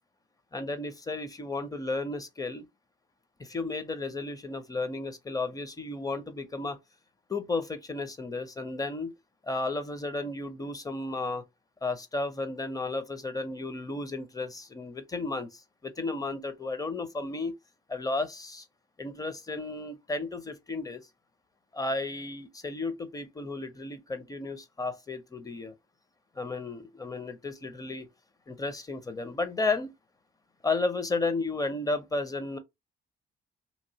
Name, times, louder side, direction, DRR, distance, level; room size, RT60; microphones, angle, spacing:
voice 1, 0.5-2.6 3.4-6.8 7.3-9.1 9.4-11.4 11.8-17.6 17.9-18.7 19.0-21.0 21.7-25.7 26.4-28.1 28.5-29.9 30.6-32.6, left 3 dB, 20° left, 0.6 m, -33 dB
2.9 x 2.5 x 2.8 m
cardioid pair, 90°, 20 cm